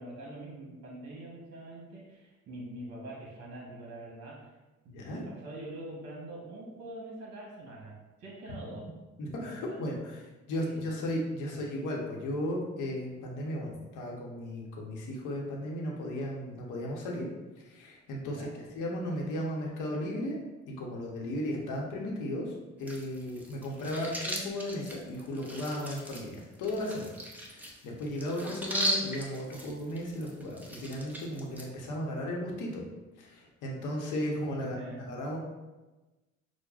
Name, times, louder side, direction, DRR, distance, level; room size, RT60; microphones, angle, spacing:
voice 1, 0.0-4.5 4.8-8.8 9.4-9.8 10.6-10.8 11.5-11.6 18.2-18.5 34.6-35.0, right 1 dB, 55° right, -3 dB, 1.0 m, -44 dB
voice 2, 4.9-5.2 9.2-10.2 10.5-17.3 17.7-20.4 20.7-22.5 22.8-27.2 27.4-32.8 33.2-35.4, left 1 dB, 90° left, -1 dB, 0.9 m, -35 dB
sound 1, 22.8-31.7, equal, 5° right, 0.6 m, -38 dB
6.2 x 2.1 x 2.4 m, 1.1 s
cardioid pair, 90°, 30 cm